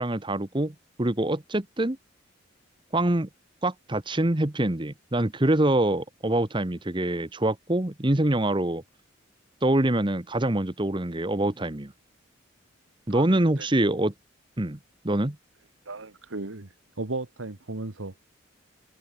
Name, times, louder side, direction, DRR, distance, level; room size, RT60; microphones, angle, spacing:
voice 1, 0.0-2.0 2.9-3.3 3.6-8.8 9.6-11.9 13.1-14.1 14.6-14.8 15.0-15.4, right 1 dB, 25° right, 1.1 m, -25 dB
voice 2, 13.1-13.7 15.9-16.7 17.0-18.2, right 2 dB, 80° right, 1.6 m, -35 dB
head